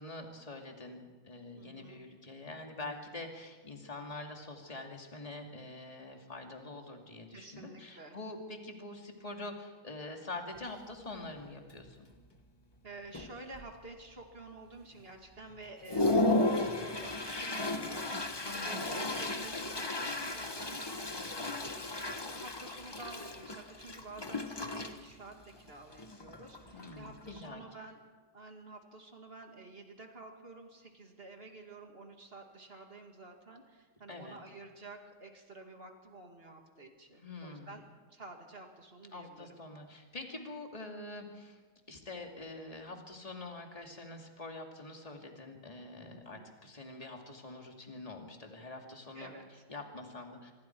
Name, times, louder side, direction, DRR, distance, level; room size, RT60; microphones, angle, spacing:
voice 1, 0.0-12.1 18.4-19.1 26.7-27.6 34.1-34.4 37.2-37.8 39.1-41.6 41.9-49.3 49.7-50.5, left 2 dB, 15° left, 2 dB, 2.4 m, -45 dB
voice 2, 1.6-2.0 7.3-8.2 12.8-28.0 28.3-37.8 38.1-39.5 46.1-46.5 49.1-49.6, right 2 dB, 25° right, 3 dB, 2.4 m, -50 dB
Toilet flush, 10.6-10.7 11.2-11.4 11.7-12.3 12.8-12.9 13.1-13.9 14.4-14.5 15.0-15.1 15.5-27.5, left 2 dB, 40° left, 0.3 m, -35 dB
25.0 x 22.5 x 4.6 m, 1.4 s
omnidirectional pair, 2.3 m